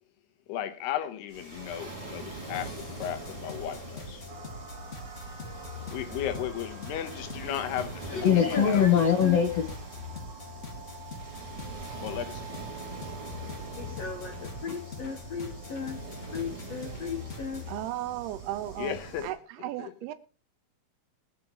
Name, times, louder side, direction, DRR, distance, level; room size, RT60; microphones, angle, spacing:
voice 1, 0.5-4.2 5.9-8.9 12.0-12.5 18.8-19.3 19.6-19.9, left 11 dB, 90° left, 3.2 m, -35 dB
Waves surf, 1.3-19.3, right 3 dB, 10° right, 1.6 m, -43 dB
sound 1, 2.5-17.8, left 4 dB, 40° left, 1.1 m, -43 dB
sound 2, 4.3-16.3, right 8 dB, 55° right, 1.3 m, -49 dB
voice 2, 8.1-9.7 13.6-16.0 16.3-17.6, left 8 dB, 65° left, 1.6 m, -27 dB
voice 3, 17.7-18.9 19.2-19.4 19.6-20.1, right 14 dB, 85° right, 2.8 m, -34 dB
22.0 x 9.5 x 3.1 m
omnidirectional pair, 4.5 m